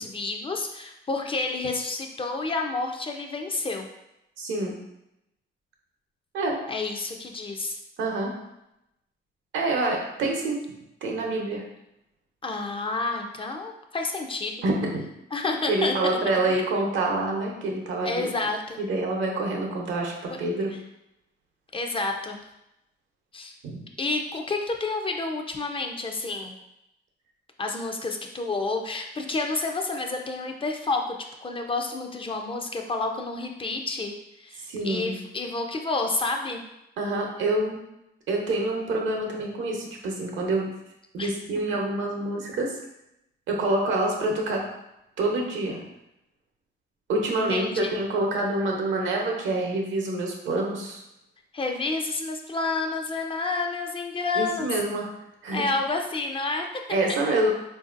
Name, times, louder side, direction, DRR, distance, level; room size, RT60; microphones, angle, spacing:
voice 1, 0.0-3.9 6.7-7.8 12.4-14.6 15.3-16.2 18.0-18.8 21.7-22.4 23.3-23.5 24.0-26.5 27.6-31.2 31.4-36.6 41.2-41.3 47.4-47.9 51.5-54.7 55.5-57.4, left 3 dB, 25° left, 3 dB, 0.4 m, -29 dB
voice 2, 4.4-4.8 6.3-6.6 8.0-8.3 9.5-10.6 11.0-11.6 14.6-15.0 15.7-18.3 18.8-20.7 23.6-23.8 34.7-35.2 37.0-37.8 38.3-40.7 41.1-42.8 43.5-44.6 45.2-45.9 47.1-51.0 54.4-55.1 55.4-55.6 56.9-57.5, right 2 dB, 75° right, 0 dB, 0.8 m, -26 dB
3.6 x 2.6 x 2.5 m, 0.85 s
cardioid pair, 90°, 20 cm